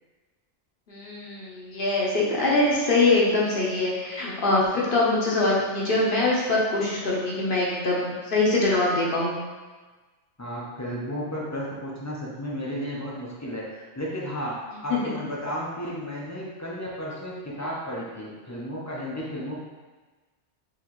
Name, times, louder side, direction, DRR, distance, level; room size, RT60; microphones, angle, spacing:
voice 1, 0.9-9.4 14.9-15.1, left 2 dB, 55° left, -5 dB, 0.9 m, -23 dB
voice 2, 10.4-19.6, equal, 25° left, -5 dB, 0.4 m, -33 dB
4.1 x 3.0 x 2.9 m, 1.3 s
omnidirectional pair, 1.2 m